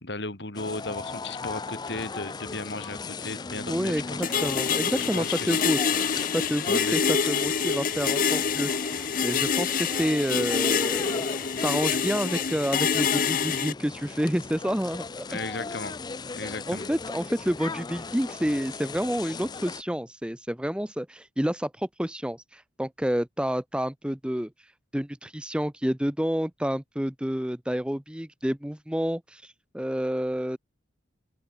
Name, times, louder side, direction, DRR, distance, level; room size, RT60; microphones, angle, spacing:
voice 1, 0.0-4.3 4.5-4.6 5.1-5.6 6.7-7.0 15.3-16.0 16.3-16.9, left 3 dB, 70° left, 3.4 m, -35 dB
sound 1, 0.5-19.8, left 4 dB, 25° left, 0.4 m, -37 dB
voice 2, 3.7-5.8 6.3-15.4 16.7-24.5 24.9-30.6, equal, 5° right, 0.8 m, -29 dB
sound 2, 4.2-13.7, left 6 dB, 50° left, 0.9 m, -26 dB
open air
head